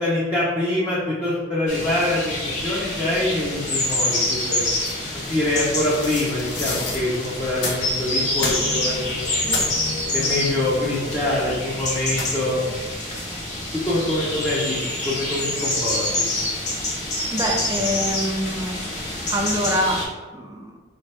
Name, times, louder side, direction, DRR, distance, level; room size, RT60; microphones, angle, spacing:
voice 1, 0.0-4.6 5.3-9.6 10.1-12.6 13.7-16.3, left 1 dB, 15° left, -9 dB, 0.7 m, -25 dB
sound 1, 1.7-20.1, left 1 dB, 40° left, 0.9 m, -27 dB
sound 2, 4.8-7.9 8.3-9.0 9.3-9.8 11.0-11.4 12.1-12.5, left 2 dB, 70° left, 0.8 m, -31 dB
sound 3, 7.7-12.5, left 2 dB, 55° left, 0.5 m, -37 dB
voice 2, 17.3-18.9 19.3-20.8, equal, 20° right, 0 dB, 0.5 m, -25 dB
4.4 x 2.9 x 3.3 m, 1.3 s
head